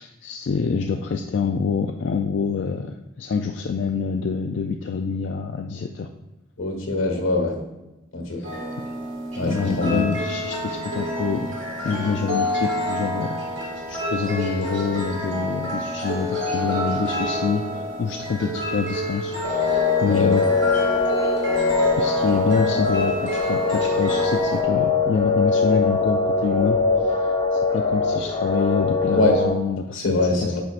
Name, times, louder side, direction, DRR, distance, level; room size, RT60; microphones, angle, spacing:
voice 1, 0.0-6.1 8.4-8.5 9.4-11.5 11.8-20.5 22.0-27.2 27.5-30.6, left 5 dB, 60° left, 4 dB, 0.3 m, -26 dB
voice 2, 6.6-7.6 8.1-8.4 9.4-10.0 20.1-20.3 29.1-29.4 29.9-30.6, left 2 dB, 85° left, 2 dB, 1.5 m, -23 dB
sound 1, 8.4-24.6, equal, 70° right, 1.6 m, -29 dB
sound 2, 19.4-29.5, left 4 dB, 25° left, 0.8 m, -22 dB
9.3 x 4.6 x 2.5 m, 0.99 s
head